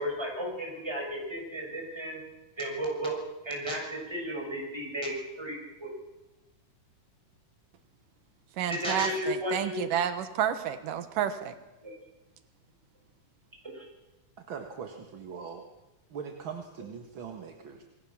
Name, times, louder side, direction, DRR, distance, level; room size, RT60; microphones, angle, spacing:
voice 1, 0.0-2.2 2.6-3.2 3.4-5.9 8.7-9.8 11.8-11.9 13.7-13.9 15.3-15.4, equal, 5° right, -1 dB, 6.6 m, -34 dB
voice 2, 8.6-11.5, right 9 dB, 90° right, 9 dB, 3.0 m, -30 dB
voice 3, 14.5-15.6 16.1-17.8, right 6 dB, 45° right, 4 dB, 2.0 m, -41 dB
27.5 x 20.5 x 7.3 m, 1.1 s
omnidirectional pair, 3.7 m